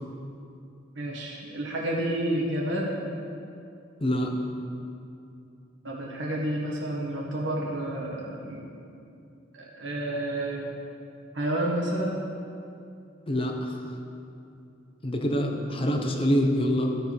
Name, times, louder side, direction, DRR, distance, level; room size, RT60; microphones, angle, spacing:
voice 1, 1.0-2.9 5.8-8.6 9.5-10.7 11.3-12.2, right 1 dB, 85° right, -3 dB, 1.7 m, -30 dB
voice 2, 13.3-13.8 15.0-16.9, equal, 30° left, 3 dB, 0.8 m, -25 dB
13.5 x 4.6 x 5.3 m, 2.6 s
head